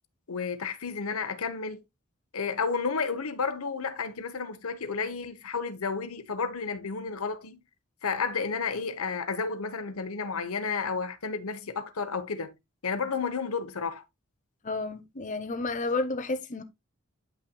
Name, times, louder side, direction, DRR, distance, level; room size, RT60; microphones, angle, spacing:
voice 1, 0.3-1.8 2.3-7.6 8.0-12.5 12.8-14.0, left 5 dB, 90° left, 1.0 m, -31 dB
voice 2, 14.6-16.6, left 3 dB, 35° left, 0.7 m, -31 dB
9.3 x 5.8 x 2.2 m
head